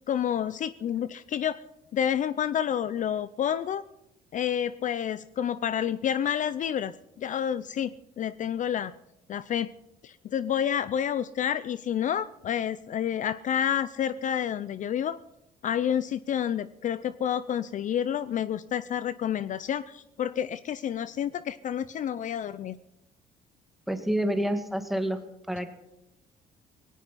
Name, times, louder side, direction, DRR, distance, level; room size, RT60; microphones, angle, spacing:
voice 1, 0.1-1.6 1.9-3.8 4.3-7.9 8.2-8.9 9.3-9.7 10.0-15.2 15.6-22.8, left 9 dB, 50° left, 15 dB, 0.6 m, -29 dB
voice 2, 23.9-25.2 25.5-25.7, right 1 dB, ahead, 6 dB, 2.1 m, -28 dB
18.5 x 17.5 x 4.2 m, 0.88 s
cardioid pair, 110°, 17 cm